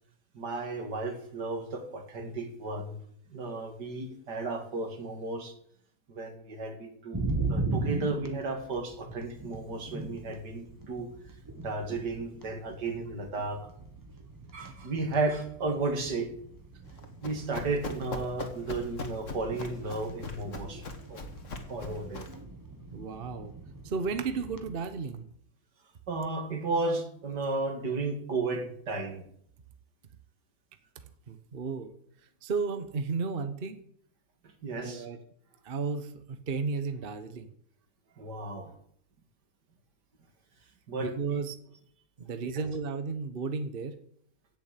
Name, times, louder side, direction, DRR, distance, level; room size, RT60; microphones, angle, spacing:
voice 1, 0.3-3.0 3.3-5.6 6.1-11.1 11.5-13.7 14.5-16.3 17.2-21.2 21.7-22.3 26.1-29.3 34.4-35.1 38.2-38.7 40.9-41.4 42.5-42.6, right 3 dB, 75° right, 6 dB, 2.8 m, -34 dB
sound 1, 7.1-24.7, right 2 dB, 10° right, 1.4 m, -39 dB
Run, 16.9-22.4, left 3 dB, 45° left, 2.2 m, -41 dB
voice 2, 22.9-23.5 23.8-25.2 31.3-31.9 32.4-33.8 34.7-35.2 35.6-37.5 41.0-41.6 42.2-44.0, right 4 dB, 35° right, 10 dB, 1.1 m, -33 dB
16.5 x 7.2 x 8.3 m, 0.67 s
omnidirectional pair, 1.8 m